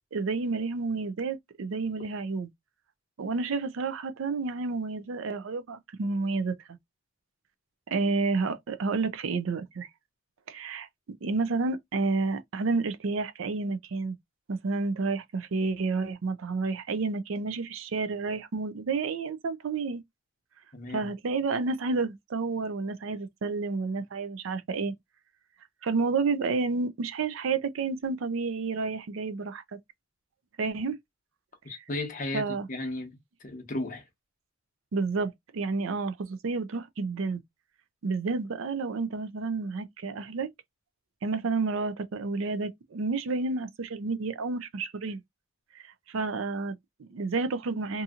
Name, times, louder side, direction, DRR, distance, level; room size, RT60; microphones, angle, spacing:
voice 1, 0.1-2.5 3.2-6.8 7.9-9.9 10.5-10.9 11.2-14.2 14.5-20.0 20.9-24.9 25.8-29.6 30.6-31.0 32.3-32.7 34.9-37.4 38.0-40.5 41.2-45.2 45.7-48.0, right 4 dB, 70° right, 0.4 m, -30 dB
voice 2, 20.7-21.1 31.6-33.2 33.4-34.1, left 2 dB, 40° left, 0.8 m, -35 dB
2.7 x 2.6 x 2.3 m
head